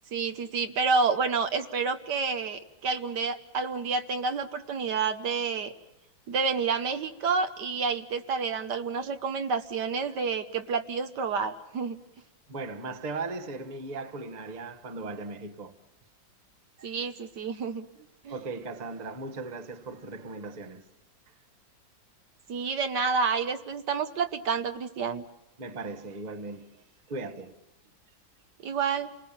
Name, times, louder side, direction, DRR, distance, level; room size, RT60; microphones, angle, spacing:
voice 1, 0.1-5.7 6.3-12.0 16.8-17.9 18.2-18.3 22.5-25.2 28.6-29.1, right 5 dB, 65° right, 1.7 m, -29 dB
voice 2, 12.5-15.7 16.8-16.9 18.3-20.8 25.6-27.6, right 3 dB, 25° right, 1.2 m, -38 dB
29.0 x 19.5 x 7.3 m
omnidirectional pair, 2.0 m